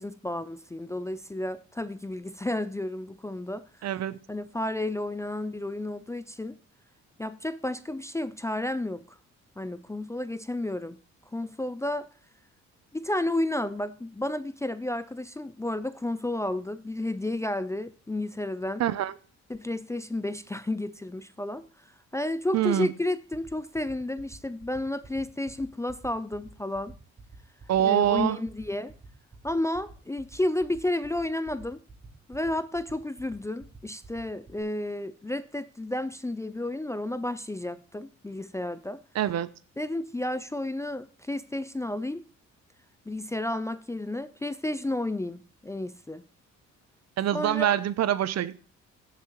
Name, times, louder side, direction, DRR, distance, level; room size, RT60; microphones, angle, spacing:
voice 1, 0.0-3.7 4.3-6.6 7.2-9.2 9.6-11.0 11.3-12.1 12.9-18.8 19.5-21.7 22.1-26.9 27.8-28.9 29.4-31.8 32.3-39.0 39.8-42.2 43.1-46.2 47.3-47.7, left 1 dB, 10° left, 0.4 m, -32 dB
voice 2, 3.8-4.2 18.8-19.1 22.5-22.9 27.7-28.4 39.1-39.5 47.2-48.6, right 11 dB, 60° right, 0.6 m, -25 dB
sound 1, 23.3-34.6, right 4 dB, 35° right, 5.9 m, -48 dB
16.0 x 7.1 x 3.0 m
cardioid pair, 90°, 30 cm